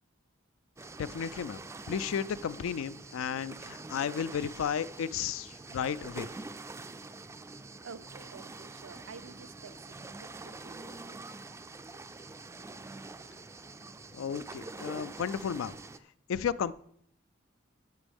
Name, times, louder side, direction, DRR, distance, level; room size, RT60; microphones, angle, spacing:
sound 1, 0.8-16.0, right 3 dB, 15° right, 0.3 m, -45 dB
voice 1, 1.0-1.6 1.9-6.3 14.1-15.7 16.3-16.7, left 7 dB, 80° left, 17 dB, 0.4 m, -33 dB
voice 2, 7.5-11.2, right 5 dB, 75° right, 13 dB, 0.5 m, -51 dB
14.0 x 6.1 x 3.5 m, 0.67 s
head